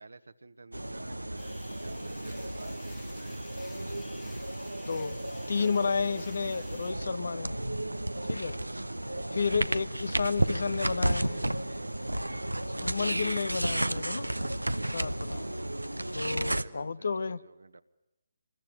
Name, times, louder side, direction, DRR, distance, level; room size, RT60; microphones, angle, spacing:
voice 1, 0.0-4.5 5.4-7.1 8.4-10.4 11.2-12.5 12.9-13.4 13.8-14.0 15.5-15.8 16.3-17.8, right 3 dB, 70° right, 1.5 m, -51 dB
sound 1, 0.7-16.6, right 1 dB, 85° right, 0.9 m, -33 dB
sound 2, 1.4-6.9, left 8 dB, 15° left, 1.5 m, -56 dB
voice 2, 4.9-5.2 5.5-7.5 8.3-8.6 9.3-11.5 12.8-14.3 14.8-15.6 16.1-17.4, left 5 dB, 60° left, 0.9 m, -31 dB
27.0 x 21.5 x 9.3 m
figure-of-eight pair, 145°, 0 cm